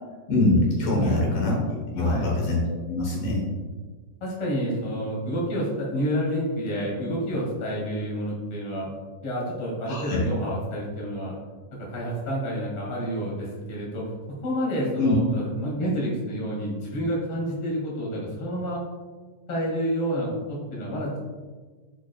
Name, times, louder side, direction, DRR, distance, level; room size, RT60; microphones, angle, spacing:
voice 1, 0.3-1.6 1.9-2.6 2.9-3.4 9.9-10.2 15.0-15.2, left 2 dB, 80° left, -2 dB, 2.7 m, -23 dB
voice 2, 0.9-1.3 2.0-2.3 3.1-3.3 4.2-8.9 9.2-11.4 11.7-18.8 19.5-21.2, equal, 45° left, -4 dB, 2.9 m, -29 dB
11.5 x 5.1 x 2.3 m, 1.4 s
omnidirectional pair, 3.6 m